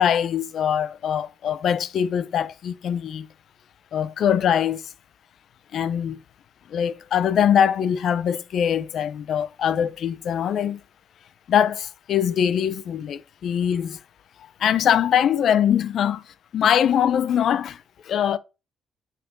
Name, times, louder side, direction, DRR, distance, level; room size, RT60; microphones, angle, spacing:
voice 1, 0.0-3.3 3.9-4.9 5.7-6.2 6.7-10.8 11.5-14.0 14.6-18.4, left 9 dB, 65° left, 0.6 m, -22 dB
8.3 x 3.7 x 5.4 m
cardioid pair, 90°, 0 cm